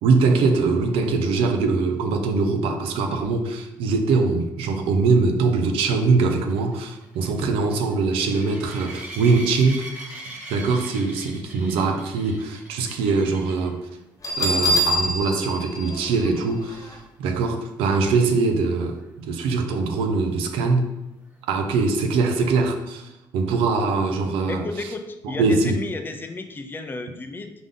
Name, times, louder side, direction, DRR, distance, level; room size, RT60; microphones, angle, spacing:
voice 1, 0.0-10.2 10.5-13.8 14.4-20.9 21.5-24.6 25.2-25.8, right 4 dB, 85° right, 5 dB, 0.5 m, -22 dB
sound 1, 5.8-13.7 14.3-14.6 14.9-15.0 15.4-15.5 19.0-19.1, right 1 dB, 15° right, 1.6 m, -40 dB
Bell, 14.2-16.9, equal, 40° left, 1.1 m, -25 dB
voice 2, 24.5-27.5, left 3 dB, 20° left, 6 dB, 0.5 m, -32 dB
3.9 x 3.5 x 3.7 m, 0.92 s
supercardioid pair, 75°, 9 cm